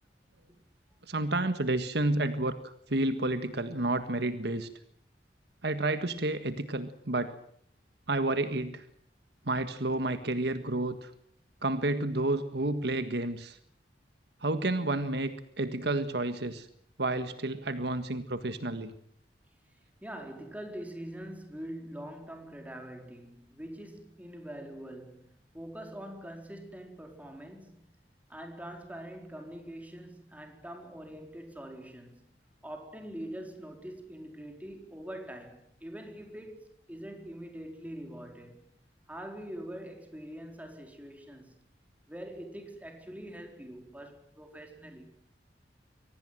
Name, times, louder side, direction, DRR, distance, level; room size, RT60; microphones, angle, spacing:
voice 1, 1.1-4.7 5.6-7.4 8.1-8.8 9.4-11.1 11.6-13.6 14.4-16.7 17.0-18.9, right 2 dB, 70° right, 1.7 m, -30 dB
voice 2, 20.0-28.0 28.3-32.3 32.6-38.6 39.1-41.6 42.1-45.2, right 1 dB, 10° right, 4.4 m, -44 dB
24.5 x 17.5 x 9.2 m
head